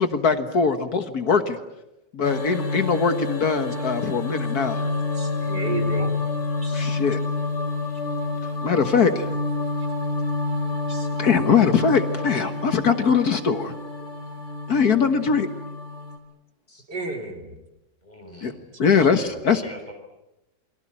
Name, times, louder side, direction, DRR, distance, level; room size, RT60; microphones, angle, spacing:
voice 1, 0.0-1.6 2.1-4.8 6.7-7.2 8.6-9.2 11.2-13.7 14.7-15.5 18.4-18.5 18.8-19.6, left 6 dB, 60° left, 9 dB, 1.9 m, -21 dB
sound 1, 2.2-16.2, left 3 dB, 90° left, 3.7 m, -28 dB
voice 2, 4.7-6.3 6.6-6.9 7.5-7.7 9.8-9.9 10.9-11.1 12.0-12.5 13.6-13.8 15.4-15.5 16.9-17.6 19.4-19.7, right 3 dB, 85° right, 3 dB, 4.5 m, -35 dB
voice 3, 18.0-19.9, equal, 25° left, 4 dB, 6.6 m, -45 dB
28.5 x 23.0 x 8.8 m, 0.93 s
omnidirectional pair, 1.8 m